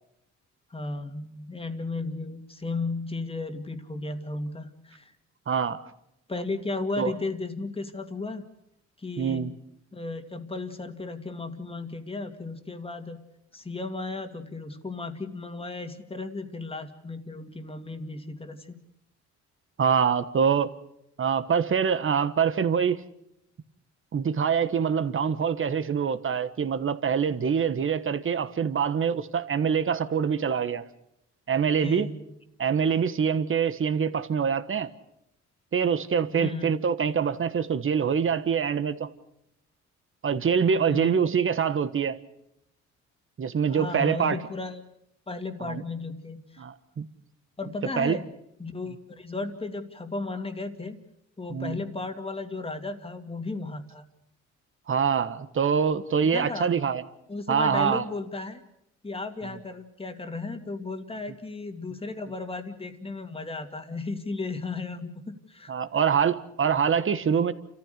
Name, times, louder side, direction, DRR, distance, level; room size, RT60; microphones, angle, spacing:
voice 1, 0.7-5.1 6.3-8.4 9.0-9.5 9.9-13.2 13.5-18.8 31.8-32.4 36.3-36.8 40.8-41.2 43.7-44.8 45.3-46.6 47.6-48.3 48.6-51.0 51.4-54.1 56.2-56.7 57.3-58.6 59.0-65.7, left 3 dB, 20° left, 6 dB, 2.3 m, -35 dB
voice 2, 5.5-5.8 7.0-7.1 9.2-9.5 19.8-20.7 21.2-23.0 24.1-30.8 31.5-32.1 32.6-34.9 35.7-39.1 40.2-42.2 43.4-44.4 45.6-45.8 46.6-47.1 48.0-48.2 51.5-51.8 54.9-57.0 57.5-58.0 65.7-67.5, right 7 dB, 45° right, 12 dB, 1.4 m, -25 dB
29.5 x 14.5 x 6.7 m, 0.81 s
cardioid pair, 90°, 30 cm